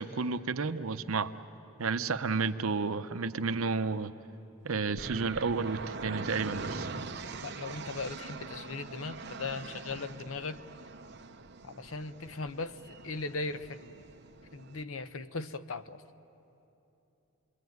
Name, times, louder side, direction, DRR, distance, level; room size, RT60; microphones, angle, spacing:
voice 1, 0.0-1.3 1.8-4.1 4.6-6.9, right 4 dB, 85° right, 0.8 m, -31 dB
sound 1, 5.0-14.8, right 3 dB, 50° right, 1.0 m, -43 dB
voice 2, 7.4-10.6 11.6-14.0 14.5-16.0, left 3 dB, 80° left, 0.9 m, -38 dB
28.0 x 21.5 x 9.4 m
head